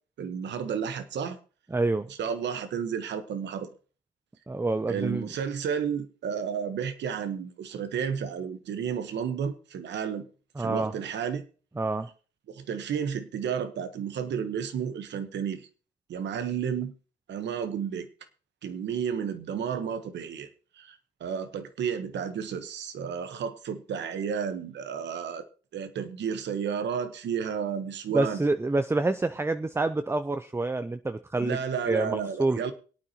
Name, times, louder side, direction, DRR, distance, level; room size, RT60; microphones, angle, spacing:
voice 1, 0.2-1.4 2.2-3.7 4.9-10.2 10.6-11.4 12.5-15.7 16.1-16.9 17.3-18.1 18.6-20.5 20.8-25.4 25.7-28.4 31.4-32.7, right 7 dB, 75° right, 10 dB, 1.2 m, -32 dB
voice 2, 1.7-2.1 4.5-5.3 10.6-10.9 11.8-12.1 28.1-31.6 31.9-32.7, right 2 dB, 15° right, 10 dB, 0.6 m, -27 dB
23.0 x 8.8 x 3.0 m, 0.38 s
supercardioid pair, 55°, 18 cm